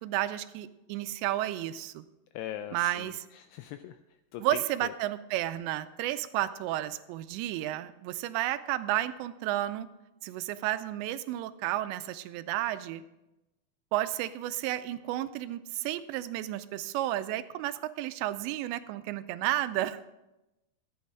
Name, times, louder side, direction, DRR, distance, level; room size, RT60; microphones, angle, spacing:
voice 1, 0.0-2.0 2.7-3.3 4.4-9.9 10.2-13.0 13.9-20.1, right 14 dB, 85° right, 12 dB, 2.8 m, -32 dB
voice 2, 2.4-3.1 3.4-4.0 4.3-4.9, left 11 dB, 85° left, 9 dB, 2.3 m, -40 dB
13.0 x 9.2 x 4.8 m, 0.95 s
omnidirectional pair, 5.1 m